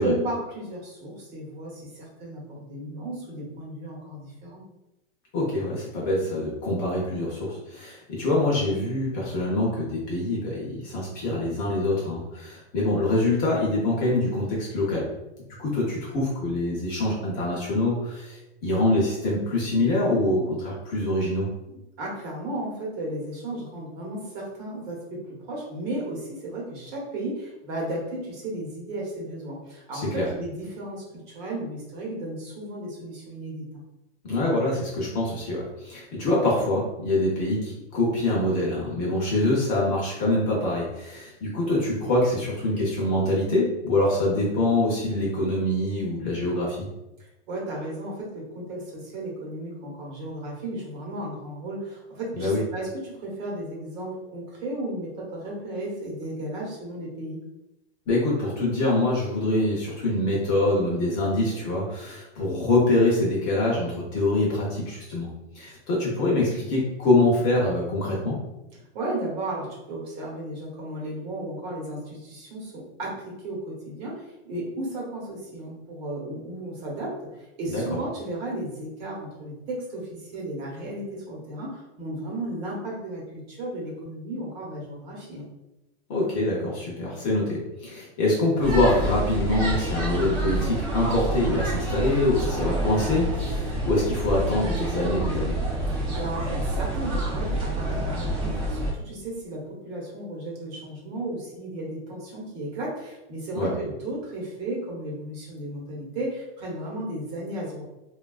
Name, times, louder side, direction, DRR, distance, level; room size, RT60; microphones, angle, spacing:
voice 1, 0.0-4.6 21.7-33.8 47.5-57.4 68.9-73.2 73.4-77.1 77.4-85.5 95.9-107.8, right 1 dB, 45° right, -3 dB, 1.0 m, -34 dB
voice 2, 5.3-15.1 15.6-21.5 29.9-30.3 34.2-46.9 52.4-52.6 58.1-65.3 65.5-68.4 77.7-78.0 86.1-95.6 103.6-103.7, left 2 dB, 25° left, -5 dB, 0.5 m, -25 dB
sound 1, 88.6-98.9, right 1 dB, 25° right, 0.4 m, -28 dB
3.2 x 2.3 x 2.3 m, 0.96 s
supercardioid pair, 170°, 33 cm